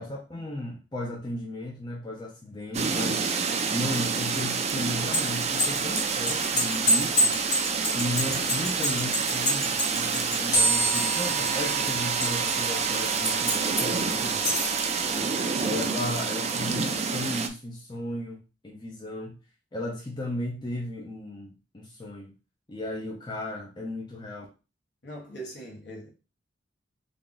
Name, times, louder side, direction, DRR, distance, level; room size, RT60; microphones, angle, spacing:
voice 1, 0.0-7.4 7.9-14.5 15.6-19.3 19.7-22.3 22.7-24.5, left 1 dB, 25° left, 0.5 m, -35 dB
sound 1, 2.7-17.5, right 5 dB, 35° right, 0.4 m, -28 dB
sound 2, 4.9-11.2 11.5-12.7 13.3-13.9 14.3-14.8, left 1 dB, 80° left, 1.9 m, -27 dB
sound 3, 10.5-17.0, right 3 dB, 40° left, 1.2 m, -32 dB
voice 2, 14.1-14.4 15.0-15.3 25.0-26.1, right 1 dB, 60° left, 1.3 m, -41 dB
3.5 x 2.3 x 3.8 m
head